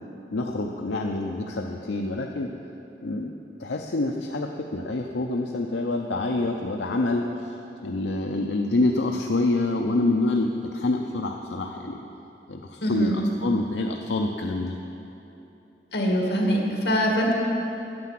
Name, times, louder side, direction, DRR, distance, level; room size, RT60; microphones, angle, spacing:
voice 1, 0.3-2.5 3.0-3.3 3.6-7.5 7.8-12.0 12.5-14.8, left 2 dB, 90° left, 2 dB, 0.6 m, -26 dB
voice 2, 12.8-13.2 15.9-17.3, equal, 70° left, -1 dB, 2.1 m, -23 dB
9.6 x 9.3 x 7.5 m, 2.9 s
head